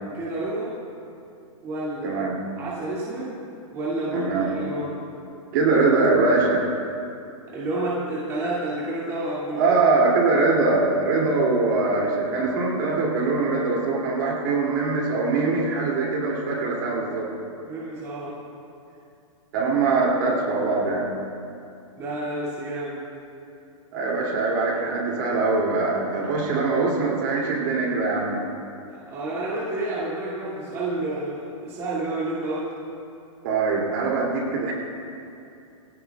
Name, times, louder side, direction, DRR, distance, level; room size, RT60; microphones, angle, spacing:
voice 1, 0.1-0.7 1.6-2.1 2.6-3.3 3.7-5.0 7.5-9.7 17.6-18.3 22.0-23.0 29.1-32.7, right 2 dB, 15° right, -9 dB, 2.4 m, -29 dB
voice 2, 2.0-2.3 4.1-4.5 5.5-6.6 9.5-17.3 19.5-21.1 23.9-28.4 33.4-34.7, right 3 dB, 35° right, -3 dB, 2.7 m, -22 dB
21.5 x 17.0 x 2.4 m, 2.6 s
hypercardioid pair, 180°, 18 cm